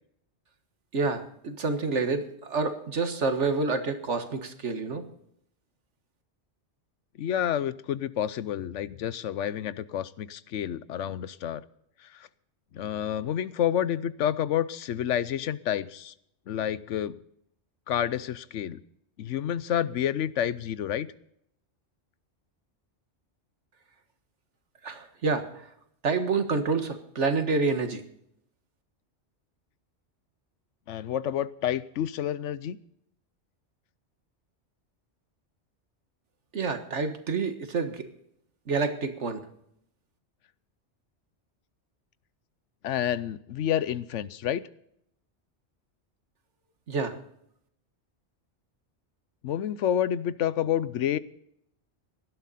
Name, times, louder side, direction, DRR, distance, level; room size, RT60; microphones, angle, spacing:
voice 1, 0.9-5.1 24.8-25.5 26.0-28.0 36.5-38.0 38.7-39.4 46.9-47.2, right 4 dB, 80° right, 7 dB, 1.9 m, -28 dB
voice 2, 7.2-11.6 12.1-12.3 12.7-16.1 16.5-17.2 17.9-18.8 19.2-21.1 30.9-32.8 42.8-44.6 49.4-51.2, left 10 dB, 85° left, 17 dB, 1.0 m, -29 dB
18.0 x 12.0 x 4.2 m, 0.72 s
omnidirectional pair, 1.2 m